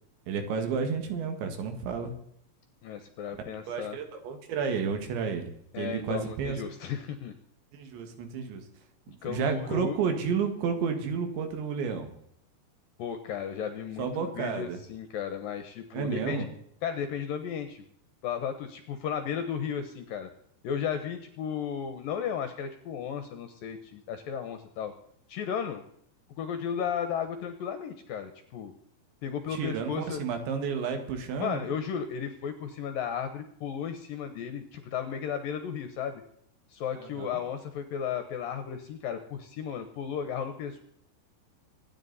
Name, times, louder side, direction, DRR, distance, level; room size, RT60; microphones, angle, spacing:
voice 1, 0.3-2.2 3.7-6.6 7.7-8.6 9.1-12.1 14.0-14.8 15.9-16.5 29.5-31.6 37.0-37.4, right 6 dB, 80° right, 6 dB, 4.2 m, -31 dB
voice 2, 2.8-4.0 5.7-7.4 9.2-10.0 13.0-16.5 16.8-17.8 18.2-20.3 20.6-24.9 25.3-25.8 26.4-28.7 29.2-30.2 31.4-36.2 36.7-40.8, left 7 dB, 70° left, 8 dB, 2.2 m, -34 dB
25.5 x 10.0 x 4.1 m, 0.67 s
omnidirectional pair, 5.1 m